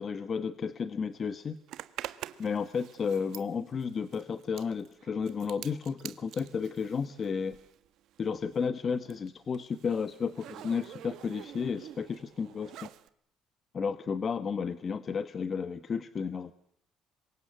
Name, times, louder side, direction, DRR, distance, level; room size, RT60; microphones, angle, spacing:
voice 1, 0.0-1.6 2.4-7.6 8.2-12.9 13.7-16.5, left 6 dB, 35° left, 12 dB, 1.2 m, -32 dB
Zipper (clothing), 1.7-7.9 8.1-13.1, right 12 dB, 65° right, 1.3 m, -47 dB
26.5 x 23.5 x 8.9 m, 0.70 s
cardioid pair, 135°, 0 cm